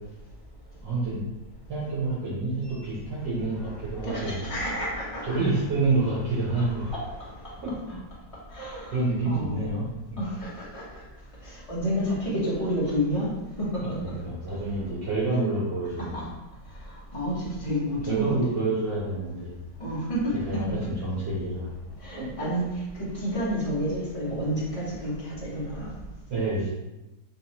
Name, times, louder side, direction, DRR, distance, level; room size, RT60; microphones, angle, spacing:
voice 1, 0.8-1.3 1.7-4.4 5.2-6.9 7.6-8.0 8.9-9.8 12.3-12.4 13.8-16.2 18.1-19.5 20.4-20.6 21.0-21.7 22.2-22.3 26.3-26.7, right 2 dB, 70° right, -10 dB, 1.7 m, -28 dB
voice 2, 3.6-5.5 6.5-7.5 8.5-9.8 10.2-11.0 11.4-14.2 16.0-16.3 16.8-18.3 19.8-20.9 22.0-25.9, equal, 30° left, -7 dB, 0.6 m, -30 dB
3.6 x 3.0 x 2.9 m, 1.0 s
omnidirectional pair, 2.1 m